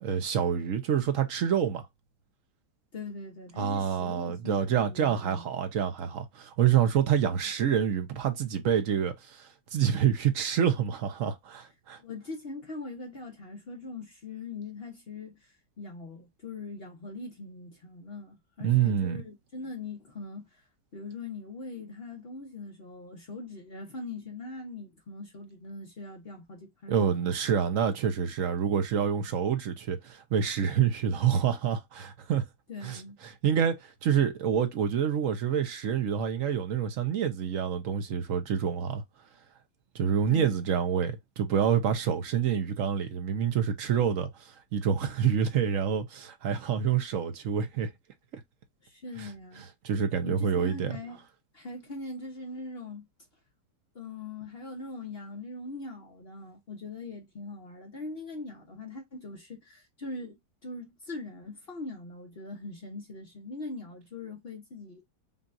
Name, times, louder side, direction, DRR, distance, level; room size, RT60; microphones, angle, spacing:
voice 1, 0.0-1.9 3.6-12.0 18.6-19.2 26.9-32.4 32.8-39.0 39.9-47.9 48.3-48.4 49.2-49.3 49.8-50.9, right 8 dB, 60° right, 0.9 m, -27 dB
voice 2, 2.9-5.5 12.0-20.6 20.9-27.1 32.7-33.2 40.3-40.7 48.8-49.6 50.2-51.2 51.5-53.1 53.9-65.0, left 3 dB, 40° left, 1.0 m, -41 dB
5.4 x 2.4 x 2.5 m
omnidirectional pair, 1.9 m